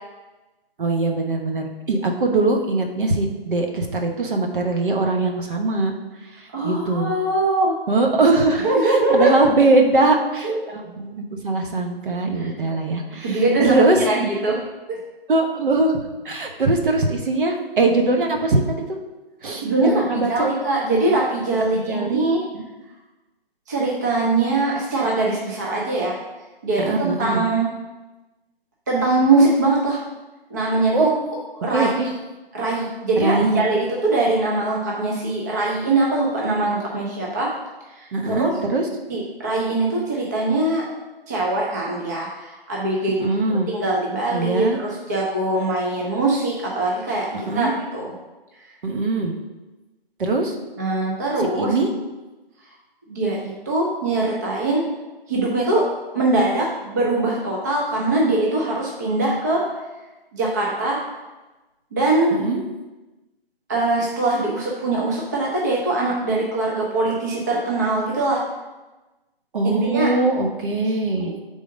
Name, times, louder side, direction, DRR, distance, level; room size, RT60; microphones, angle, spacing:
voice 1, 0.8-5.9 6.2-7.1 7.9-14.0 15.3-16.0 16.2-19.0 19.4-20.5 21.7-22.3 22.5-22.6 26.8-27.5 30.9-31.1 31.7-32.1 33.1-33.6 38.1-38.9 43.2-43.7 44.3-44.8 47.3-47.7 48.8-49.4 50.2-50.6 51.4-51.9 62.3-62.6 69.5-71.3, right 2 dB, 55° right, 3 dB, 1.0 m, -21 dB
voice 2, 6.5-7.7 8.5-9.3 10.4-10.6 12.4-12.5 13.2-14.6 14.9-15.0 19.6-22.4 23.7-26.2 26.6-27.7 28.9-30.0 30.5-31.1 31.6-31.9 32.5-37.5 38.0-38.5 39.1-40.8 41.3-47.3 47.6-48.1 50.8-51.7 53.1-54.8 55.3-55.8 56.1-59.6 60.3-61.0 61.9-62.4 63.7-68.4 69.8-70.1 70.7-70.8 71.2-71.4, right 2 dB, 20° right, -3 dB, 0.4 m, -22 dB
4.9 x 3.7 x 5.2 m, 1.1 s
figure-of-eight pair, 150°, 30 cm